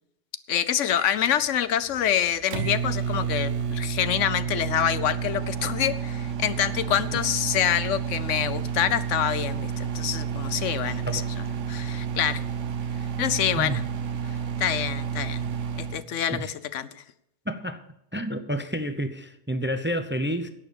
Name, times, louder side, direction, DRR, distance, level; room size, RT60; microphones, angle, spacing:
voice 1, 0.5-11.2 11.7-12.4 13.2-13.8 14.6-15.5 15.8-17.0, left 10 dB, 85° left, 14 dB, 1.1 m, -26 dB
Microwave oven, 0.9-16.0, right 7 dB, 85° right, 1.2 m, -30 dB
voice 2, 17.5-17.9 18.1-20.5, equal, 15° right, 10 dB, 0.5 m, -29 dB
11.0 x 8.5 x 6.9 m, 0.83 s
omnidirectional pair, 1.2 m